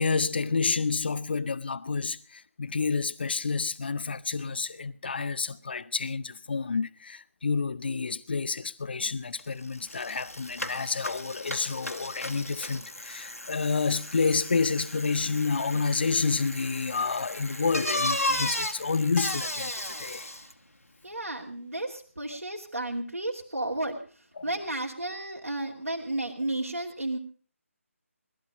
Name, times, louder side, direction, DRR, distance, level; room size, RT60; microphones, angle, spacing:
voice 1, 0.0-20.3 24.4-24.5, left 4 dB, 45° left, 0.7 m, -29 dB
Bicycle, 9.4-9.5 9.7-20.5, left 1 dB, 80° left, 1.7 m, -35 dB
voice 2, 21.0-27.2, right 1 dB, 75° right, 2.6 m, -33 dB
19.0 x 13.0 x 5.2 m
figure-of-eight pair, 150°, 8 cm